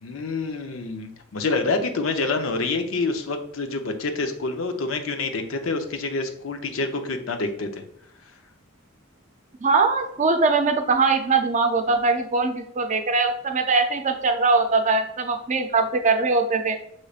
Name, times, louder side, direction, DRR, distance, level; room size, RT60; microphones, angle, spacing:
voice 1, 0.0-7.8, left 3 dB, 80° left, 5 dB, 0.6 m, -27 dB
voice 2, 9.6-16.8, right 4 dB, 35° right, 6 dB, 0.5 m, -21 dB
6.4 x 3.1 x 2.4 m, 0.73 s
head